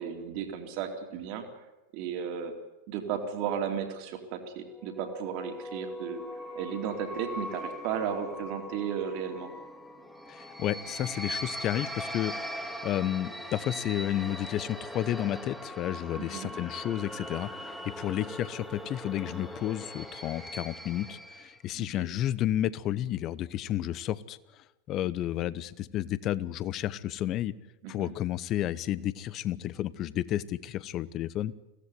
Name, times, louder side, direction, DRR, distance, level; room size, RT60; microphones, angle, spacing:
voice 1, 0.0-1.6 1.9-2.5 2.9-6.2 6.5-9.5 16.2-16.5 21.8-22.1 27.8-28.1, right 8 dB, 45° right, 5 dB, 2.7 m, -34 dB
sound 1, 4.8-21.6, equal, ahead, 2.6 m, -41 dB
voice 2, 10.3-24.4 24.9-27.5 27.9-31.5, left 12 dB, 35° left, 20 dB, 0.8 m, -31 dB
23.0 x 16.5 x 9.7 m, 1.1 s
figure-of-eight pair, 90°, 0 cm